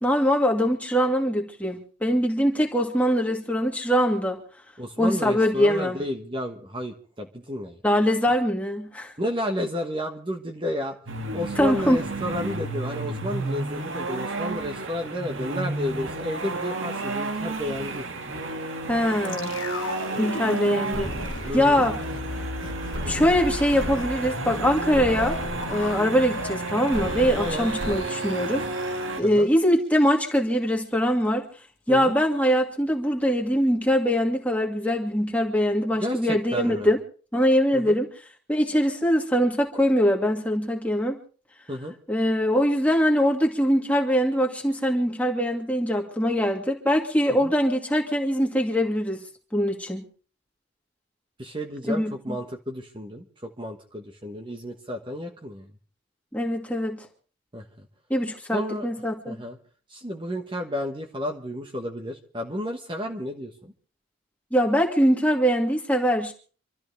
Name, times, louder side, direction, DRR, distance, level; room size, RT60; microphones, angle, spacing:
voice 1, 0.0-4.4 5.0-6.0 7.8-9.1 11.6-12.0 18.9-19.5 20.1-21.1 21.5-22.0 23.1-25.4 25.7-28.6 29.2-31.4 31.9-37.0 37.3-38.1 38.5-41.2 42.1-49.2 49.5-50.0 51.9-52.4 56.3-57.0 58.1-59.4 64.5-66.3, equal, 5° left, 1 dB, 2.2 m, -22 dB
voice 2, 4.8-7.8 9.2-11.0 11.3-18.1 21.4-21.9 27.4-27.7 29.2-29.5 31.9-32.1 35.9-36.9 37.7-38.0 41.7-42.0 47.4-47.5 51.4-55.7 57.5-57.9 58.5-58.9 59.3-59.6 59.9-63.7, left 1 dB, 25° right, 3 dB, 1.4 m, -32 dB
sound 1, 11.1-29.2, right 3 dB, 90° right, 1.9 m, -32 dB
sound 2, 19.2-29.4 29.6-29.7, left 2 dB, 80° left, 1.6 m, -37 dB
sound 3, 20.9-21.9 22.9-24.0 24.4-24.5 24.9-25.9 26.9-28.0, equal, 70° right, 5.2 m, -34 dB
26.5 x 13.5 x 3.4 m, 0.41 s
head